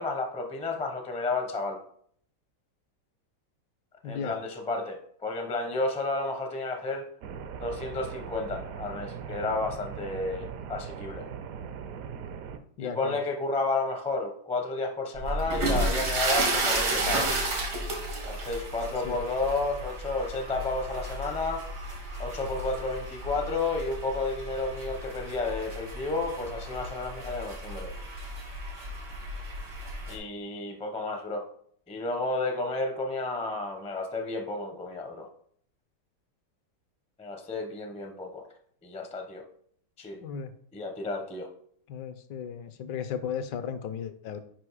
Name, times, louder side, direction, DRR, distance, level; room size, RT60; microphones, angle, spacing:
voice 1, 0.0-1.8 4.0-7.1 7.6-11.3 12.8-17.4 18.3-21.7 22.2-28.0 30.1-31.5 31.9-35.3 37.2-38.5 38.8-39.4 40.0-40.2 40.7-41.5, left 3 dB, 10° left, 4 dB, 0.3 m, -32 dB
voice 2, 4.0-4.4 12.8-13.2 19.0-19.2 40.2-40.5 41.9-44.4, left 7 dB, 75° left, 11 dB, 1.3 m, -35 dB
sound 1, 7.2-12.6, right 7 dB, 70° right, 0.8 m, -40 dB
sound 2, 15.2-30.2, right 2 dB, 90° right, 2.3 m, -33 dB
6.1 x 5.1 x 4.8 m, 0.63 s
omnidirectional pair, 2.0 m